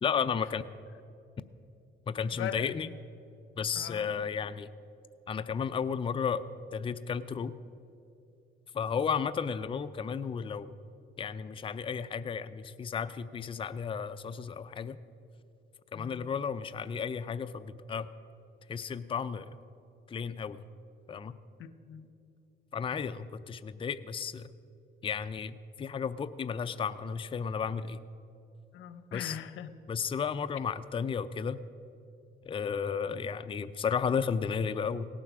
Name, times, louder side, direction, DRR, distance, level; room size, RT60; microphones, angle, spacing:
voice 1, 0.0-0.6 2.1-2.9 3.6-4.7 5.3-6.4 6.7-7.6 8.7-10.7 11.2-15.0 15.9-18.1 18.7-19.6 20.1-20.6 21.1-21.3 22.7-24.5 25.0-28.0 29.1-29.4 29.9-31.6 32.5-35.1, left 6 dB, 25° left, 12 dB, 0.4 m, -33 dB
voice 2, 2.3-2.7 3.7-4.1 15.9-16.3 21.6-22.1 28.7-29.7, left 10 dB, 80° left, 12 dB, 0.7 m, -40 dB
17.5 x 7.5 x 6.1 m, 2.6 s
cardioid pair, 90°, 20 cm